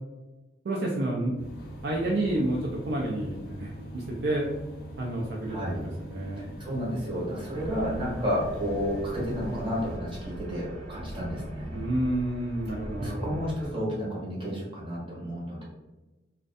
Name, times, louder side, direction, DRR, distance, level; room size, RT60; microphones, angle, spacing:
voice 1, 0.6-1.3 1.8-4.5 5.0-5.6 5.8-6.4 11.7-13.4, right 1 dB, 65° right, -3 dB, 0.4 m, -29 dB
sound 1, 1.4-10.0, right 1 dB, 50° left, 0.5 m, -43 dB
voice 2, 5.5-5.8 6.4-11.8 13.0-15.6, equal, 25° right, -6 dB, 0.7 m, -31 dB
sound 2, 7.5-13.7, equal, 80° right, 0.9 m, -40 dB
2.4 x 2.1 x 2.5 m, 1.1 s
head